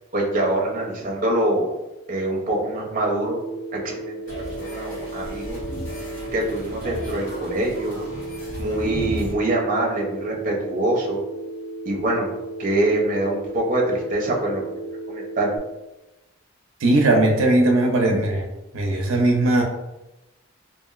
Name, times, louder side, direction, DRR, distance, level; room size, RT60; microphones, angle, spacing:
voice 1, 0.1-1.7 2.1-3.4 3.7-4.1 4.6-5.6 6.3-8.0 8.6-11.2 11.8-12.3 12.6-14.8 15.1-15.5, right 1 dB, 40° right, -2 dB, 0.6 m, -24 dB
Telephone, 3.4-15.6, right 2 dB, 35° left, 1.2 m, -35 dB
sound 1, 4.3-9.3, equal, 75° left, 1.3 m, -34 dB
voice 2, 16.8-18.4 18.7-19.6, right 2 dB, 85° right, 2 dB, 0.5 m, -18 dB
2.9 x 2.4 x 2.4 m, 0.96 s
head